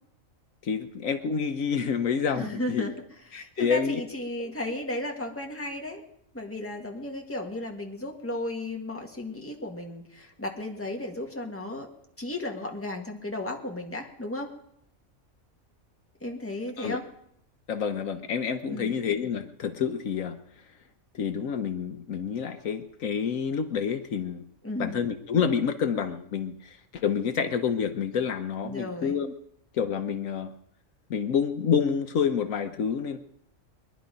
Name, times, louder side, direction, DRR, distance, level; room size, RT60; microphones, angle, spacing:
voice 1, 0.6-2.9 3.3-4.0 16.8-17.0 17.7-20.4 21.1-24.4 24.8-29.3 29.7-30.5 31.1-33.2, left 7 dB, 70° left, 7 dB, 1.3 m, -28 dB
voice 2, 2.3-3.0 3.3-6.0 6.3-11.9 12.2-14.5 16.2-17.1 18.7-18.9 24.6-25.0 28.6-29.2, left 1 dB, 10° left, 1 dB, 1.9 m, -34 dB
22.5 x 11.0 x 5.3 m, 0.75 s
omnidirectional pair, 1.4 m